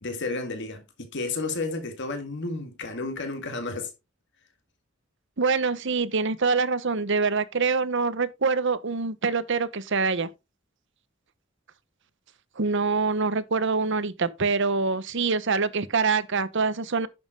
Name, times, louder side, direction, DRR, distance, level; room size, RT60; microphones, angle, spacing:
voice 1, 0.0-3.9, left 3 dB, 60° left, 1.9 m, -32 dB
voice 2, 5.4-10.3 12.6-17.1, right 4 dB, 65° right, 1.0 m, -25 dB
11.0 x 7.4 x 3.7 m
head